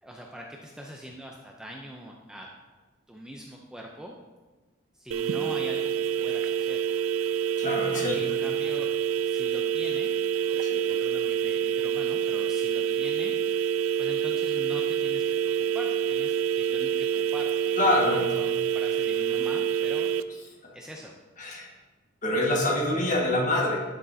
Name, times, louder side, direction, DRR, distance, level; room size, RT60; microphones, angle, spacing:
voice 1, 0.0-2.5 3.1-4.1 4.9-6.9 7.9-8.9 9.2-10.1 10.9-13.3 13.7-20.1 20.7-21.1, equal, 5° right, 0 dB, 0.4 m, -43 dB
sound 1, 5.1-20.2, right 9 dB, 90° right, 0.4 m, -27 dB
voice 2, 7.6-8.2 10.6-10.8 17.8-18.3 20.6-20.7 21.4-21.7 22.2-23.8, left 1 dB, 40° left, -1 dB, 1.4 m, -25 dB
11.5 x 6.1 x 2.7 m, 1.2 s
head